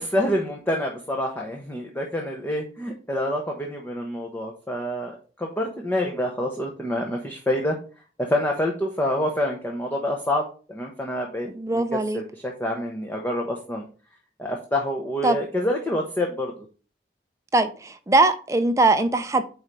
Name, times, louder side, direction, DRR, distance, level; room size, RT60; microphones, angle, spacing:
voice 1, 0.0-5.1 5.4-7.8 8.2-11.5 11.7-13.8 14.4-16.7, left 1 dB, 10° left, 0.8 m, -27 dB
voice 2, 11.5-12.2 15.2-15.4 17.5-19.4, right 2 dB, 15° right, 0.5 m, -21 dB
4.7 x 4.3 x 5.2 m
head